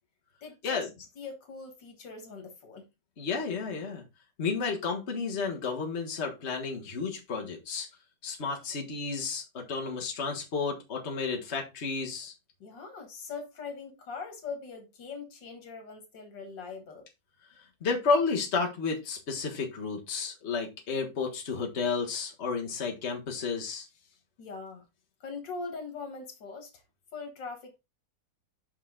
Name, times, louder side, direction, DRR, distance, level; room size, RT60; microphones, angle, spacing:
voice 1, 0.4-0.9 1.2-2.9 12.6-17.1 24.4-24.8 25.2-26.7 27.1-27.8, left 4 dB, 85° left, 2.3 m, -41 dB
voice 2, 3.2-4.0 4.4-7.9 8.2-12.3 17.8-23.9, left 4 dB, 40° left, 1.6 m, -31 dB
5.8 x 5.4 x 3.7 m
omnidirectional pair, 1.9 m